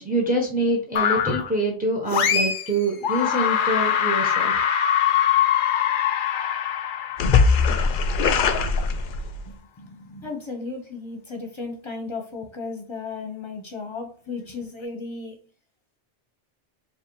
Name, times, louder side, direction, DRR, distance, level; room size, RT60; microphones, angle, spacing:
voice 1, 0.0-4.5, right 1 dB, 10° right, 1 dB, 0.9 m, -25 dB
sound 1, 1.0-1.5 2.1-2.7 3.0-9.5, left 7 dB, 60° left, 0.6 m, -22 dB
voice 2, 9.5-15.4, left 4 dB, 30° left, 3 dB, 0.9 m, -35 dB
4.8 x 2.6 x 3.1 m, 0.38 s
omnidirectional pair, 1.0 m